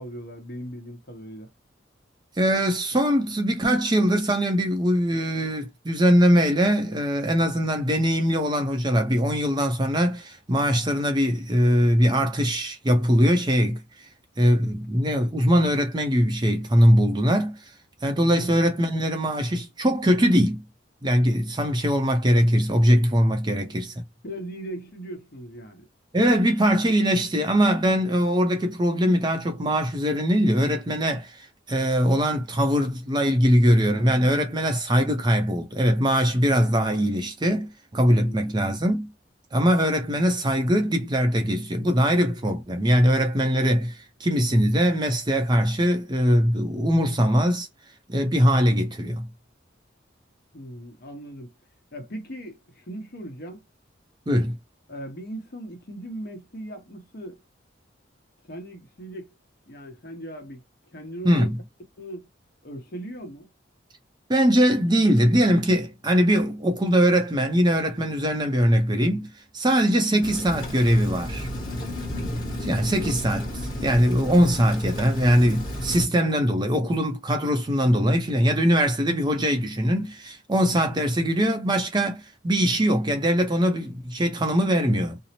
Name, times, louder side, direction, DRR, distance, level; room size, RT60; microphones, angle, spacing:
voice 1, 0.0-1.5 18.2-18.6 24.2-25.9 38.2-38.5 50.5-51.5 51.9-53.6 54.9-57.4 58.4-59.3 59.7-61.5 62.0-62.3 62.6-63.5 72.0-72.4, right 1 dB, 50° left, 0.9 m, -38 dB
voice 2, 2.4-13.8 14.4-17.6 18.0-20.6 21.0-23.9 26.1-39.1 39.5-47.7 48.1-49.3 54.3-54.6 61.2-61.5 64.3-69.3 69.5-71.5 72.6-85.2, equal, 20° right, 0.5 m, -21 dB
Rain, 70.2-76.1, left 1 dB, 25° left, 1.1 m, -32 dB
2.7 x 2.0 x 2.8 m
head